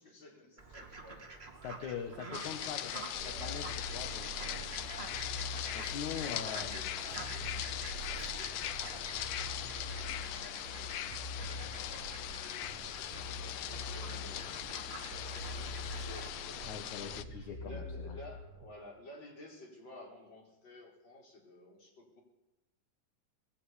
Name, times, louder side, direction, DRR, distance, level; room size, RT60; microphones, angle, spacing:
voice 1, 0.0-1.4 3.1-3.7 6.1-10.7 11.5-22.2, left 1 dB, 35° left, 0 dB, 5.1 m, -54 dB
Fowl, 0.6-16.3, right 3 dB, 20° right, 2.0 m, -49 dB
voice 2, 1.6-3.0 3.4-4.7 5.7-6.8 16.7-18.2, left 7 dB, 65° left, 4 dB, 2.9 m, -42 dB
sound 1, 2.3-17.2, left 12 dB, 85° left, 2.5 m, -40 dB
sound 2, 3.1-18.7, equal, 65° right, 2.8 m, -45 dB
21.0 x 16.5 x 8.5 m, 0.96 s
omnidirectional pair, 3.7 m